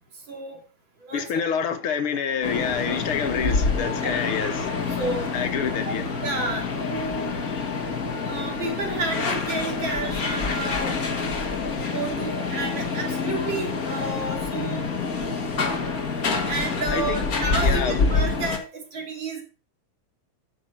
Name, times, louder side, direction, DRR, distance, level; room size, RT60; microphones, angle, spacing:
voice 1, 0.3-0.6 1.0-1.4 4.0-4.3 4.9-5.3 5.9-6.0 6.2-7.4 8.3-11.0 11.9-14.9 16.5-19.4, right 3 dB, 60° right, 3.5 m, -31 dB
voice 2, 1.1-4.7 5.3-6.1 16.9-17.2 17.6-18.1, left 7 dB, 75° left, 2.1 m, -27 dB
sound 1, 2.4-18.6, left 4 dB, 45° left, 2.0 m, -27 dB
9.7 x 6.7 x 5.8 m
omnidirectional pair, 2.4 m